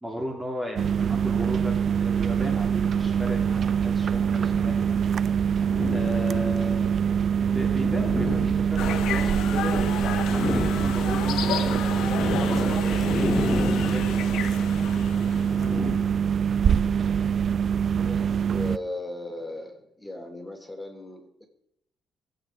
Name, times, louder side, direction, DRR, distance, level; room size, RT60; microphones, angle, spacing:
voice 1, 0.0-5.0 5.9-6.9 7.5-11.8 12.4-13.3 13.8-14.6, equal, 15° right, 1 dB, 2.8 m, -36 dB
sound 1, 0.8-18.8, right 7 dB, 55° right, 0.5 m, -24 dB
sound 2, 3.8-5.0 5.5-6.7 7.4-9.8 10.1-16.6, left 4 dB, 30° left, 0.5 m, -33 dB
sound 3, 8.8-15.7, left 9 dB, 80° left, 1.4 m, -33 dB
voice 2, 16.6-17.0 18.0-21.5, left 1 dB, 10° left, 3 dB, 3.8 m, -37 dB
24.5 x 8.6 x 4.9 m, 0.78 s
cardioid pair, 90°, 0 cm